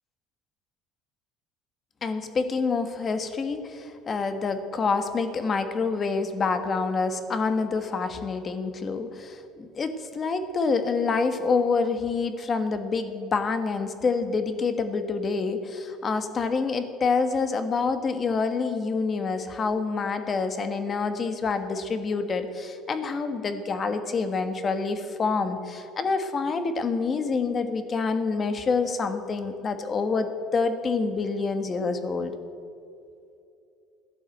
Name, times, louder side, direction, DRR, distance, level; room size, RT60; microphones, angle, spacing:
voice 1, 2.0-32.3, left 4 dB, 30° left, 9 dB, 1.4 m, -27 dB
16.0 x 10.5 x 7.8 m, 2.6 s
cardioid pair, 145°, 0 cm